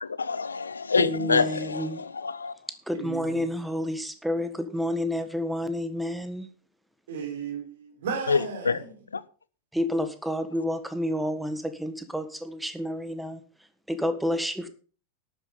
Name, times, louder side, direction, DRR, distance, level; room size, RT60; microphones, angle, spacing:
voice 1, 0.0-2.6 8.3-8.8 9.1-9.2, left 5 dB, 75° left, 18 dB, 0.7 m, -26 dB
voice 2, 1.0-2.0 2.9-6.5 9.7-13.4 13.9-14.7, equal, 5° right, 10 dB, 1.6 m, -29 dB
voice 3, 2.9-3.5 7.1-8.9, right 6 dB, 55° right, 5 dB, 3.9 m, -35 dB
12.0 x 9.2 x 5.3 m, 0.39 s
figure-of-eight pair, 90°, 0 cm